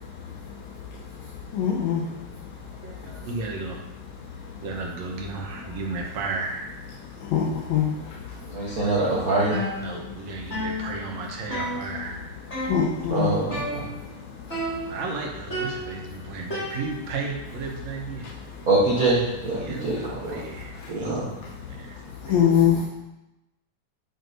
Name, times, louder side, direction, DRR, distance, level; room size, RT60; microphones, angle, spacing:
voice 1, 1.5-2.0 7.3-7.4 7.7-7.9 12.7-13.3 22.3-22.8, left 9 dB, 75° left, -4 dB, 2.0 m, -21 dB
voice 2, 2.8-3.8 4.6-6.8 9.8-12.3 14.2-18.6 19.5-21.1 21.8-22.0 22.3-22.6, right 4 dB, 70° right, 0 dB, 2.0 m, -34 dB
voice 3, 8.5-9.6 13.1-13.9 18.7-20.4 20.9-21.2, right 2 dB, 85° right, -7 dB, 0.7 m, -24 dB
sound 1, 9.5-10.2 10.5-12.2 12.5-13.1 13.5-14.2 14.5-15.1 15.5-17.2, equal, 20° left, 2.5 m, -33 dB
9.4 x 5.2 x 2.6 m, 0.97 s
omnidirectional pair, 3.4 m